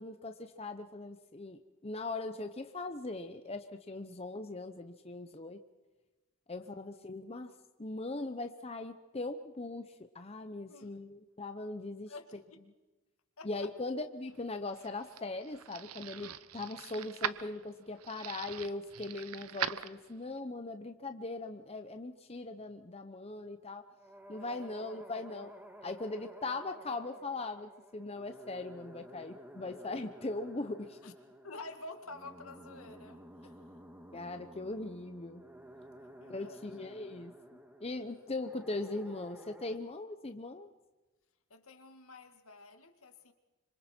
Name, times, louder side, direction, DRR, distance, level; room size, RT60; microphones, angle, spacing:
voice 1, 0.0-5.6 6.5-7.5 7.8-12.1 13.4-23.9 24.3-25.5 25.8-31.0 34.1-35.4 36.3-37.3 37.8-40.7, left 2 dB, 30° left, 8 dB, 0.8 m, -40 dB
voice 2, 6.6-7.0 10.7-11.0 12.1-12.6 13.4-13.7 24.4-24.6 31.0-31.1 31.4-33.8 36.2-36.9 41.5-43.3, left 2 dB, 75° left, 6 dB, 2.0 m, -50 dB
sound 1, 14.4-20.4, right 9 dB, 85° right, 0.8 m, -41 dB
sound 2, 24.0-39.8, equal, 10° right, 1.7 m, -53 dB
26.5 x 26.0 x 4.5 m, 1.1 s
head